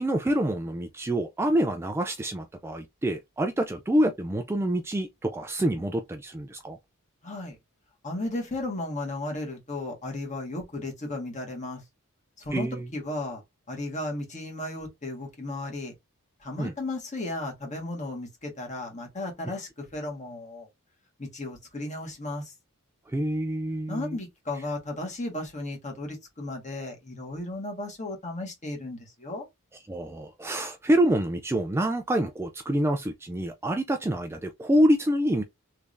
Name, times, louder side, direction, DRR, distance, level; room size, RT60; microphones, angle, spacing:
voice 1, 0.0-6.8 12.5-12.9 16.6-16.7 23.1-24.2 29.9-35.4, right 1 dB, 10° right, 0.3 m, -26 dB
voice 2, 7.2-7.5 8.0-11.8 12.4-13.4 13.7-15.9 16.4-20.7 21.2-22.5 23.9-29.4, left 2 dB, 35° left, 1.5 m, -35 dB
3.4 x 3.2 x 2.5 m
head